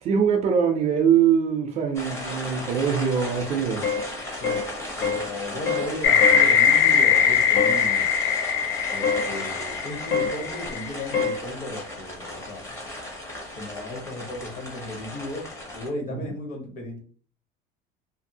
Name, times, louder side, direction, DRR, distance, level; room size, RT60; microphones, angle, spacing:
voice 1, 0.0-3.9, right 7 dB, 35° right, 0.4 m, -22 dB
sound 1, 1.9-15.9, left 1 dB, 15° left, 0.6 m, -36 dB
sound 2, 3.8-4.1 4.4-4.7 5.0-5.3 5.7-5.9 6.2-6.5 7.6-7.8 9.0-9.3 10.1-10.4 11.1-11.4, left 5 dB, 90° left, 0.9 m, -25 dB
voice 2, 5.0-8.1 8.9-12.7 13.6-15.5 15.7-17.0, left 1 dB, 40° left, 0.9 m, -35 dB
sound 3, 6.0-10.9, left 7 dB, 60° left, 0.5 m, -21 dB
2.6 x 2.6 x 2.7 m
cardioid pair, 175°, 20 cm